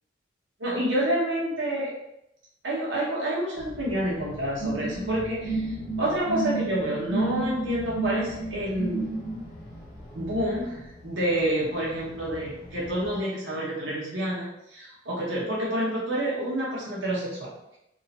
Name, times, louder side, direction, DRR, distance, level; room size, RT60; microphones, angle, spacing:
voice 1, 0.6-1.9 2.6-9.1 10.1-17.5, right 1 dB, 80° right, -6 dB, 1.0 m, -28 dB
sound 1, 3.5-13.2, equal, 15° right, 1.5 m, -44 dB
sound 2, 4.6-9.4, right 3 dB, 70° left, 1.0 m, -30 dB
3.0 x 2.8 x 2.8 m, 0.84 s
head